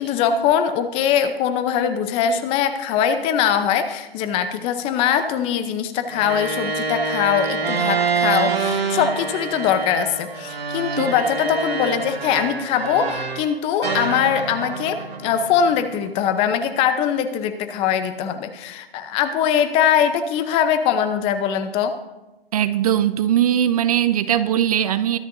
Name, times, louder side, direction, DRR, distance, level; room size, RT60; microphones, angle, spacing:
voice 1, 0.0-22.0, left 8 dB, 20° left, 10 dB, 0.7 m, -22 dB
sound 1, 6.1-13.5 13.8-16.2, right 4 dB, 80° right, 2.9 m, -26 dB
voice 2, 22.5-25.2, right 10 dB, 40° right, 13 dB, 0.5 m, -20 dB
22.5 x 11.0 x 2.7 m, 1.0 s
hypercardioid pair, 140°, 30 cm